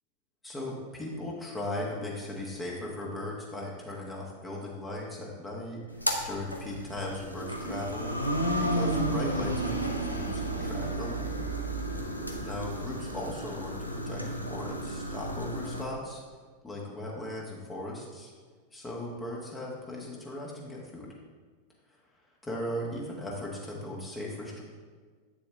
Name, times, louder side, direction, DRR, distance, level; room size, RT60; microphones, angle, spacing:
voice 1, 0.4-5.8 6.2-8.2 8.6-11.2 12.4-16.2 16.6-18.3 18.7-21.1 22.4-24.6, left 1 dB, 15° left, -3 dB, 1.5 m, -37 dB
sound 1, 5.9-15.8, right 1 dB, 90° left, 0.8 m, -32 dB
8.5 x 7.1 x 3.4 m, 1.5 s
figure-of-eight pair, 90°, 0 cm